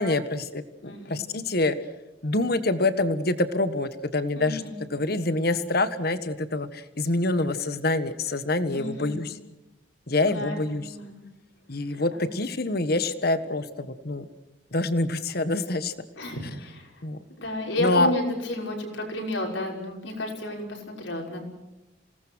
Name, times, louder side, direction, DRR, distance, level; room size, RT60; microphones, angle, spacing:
voice 1, 0.0-1.7 2.2-4.6 4.9-9.3 10.1-10.8 11.7-14.2 14.7-15.9 17.0-17.2 17.8-18.1, left 2 dB, 55° left, 12 dB, 1.5 m, -26 dB
voice 2, 0.8-1.2 4.3-4.8 8.7-9.2 10.2-11.1 11.8-12.3 16.2-17.0 17.4-21.4, left 1 dB, 75° left, 1 dB, 6.1 m, -32 dB
27.5 x 18.5 x 6.4 m, 1.0 s
head